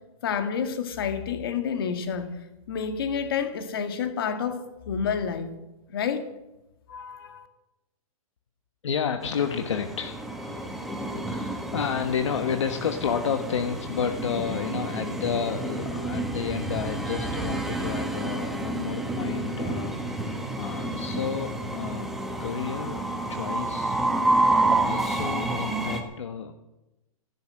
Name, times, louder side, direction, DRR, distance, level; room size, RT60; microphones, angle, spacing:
voice 1, 0.2-5.5 5.9-6.2 6.9-7.5, left 7 dB, 40° left, 8 dB, 1.9 m, -29 dB
voice 2, 8.8-10.3 11.3-20.1 20.6-22.1 22.4-23.0 23.3-24.2 24.8-26.5, left 7 dB, 55° left, 7 dB, 1.3 m, -31 dB
Train, 9.2-26.0, right 2 dB, ahead, 0.9 m, -29 dB
15.0 x 11.5 x 7.6 m, 0.95 s
hypercardioid pair, 175°, 18 cm